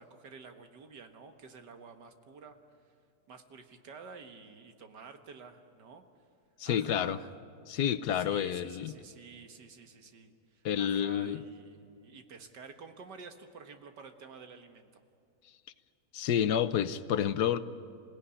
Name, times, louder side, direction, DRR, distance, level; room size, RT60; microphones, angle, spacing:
voice 1, 0.0-2.6 3.3-6.0 6.6-7.3 8.1-14.9, right 5 dB, 85° right, 6 dB, 2.1 m, -50 dB
voice 2, 6.6-7.2 7.7-8.9 10.6-11.4 16.1-17.6, left 9 dB, 75° left, 13 dB, 1.3 m, -29 dB
27.0 x 17.0 x 9.9 m, 2.4 s
omnidirectional pair, 1.8 m